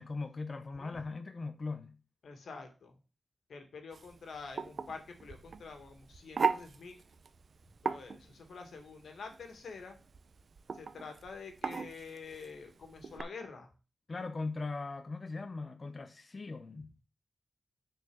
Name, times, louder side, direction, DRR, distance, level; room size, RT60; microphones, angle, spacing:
voice 1, 0.0-2.0 14.1-17.0, left 3 dB, 35° left, 0.6 m, -39 dB
voice 2, 2.2-3.0 3.5-7.0 7.8-10.0 10.7-13.7, left 4 dB, 85° left, 1.8 m, -47 dB
sound 1, 3.9-13.2, right 5 dB, 55° right, 0.6 m, -39 dB
6.6 x 4.5 x 6.1 m
wide cardioid pair, 130°, 0 cm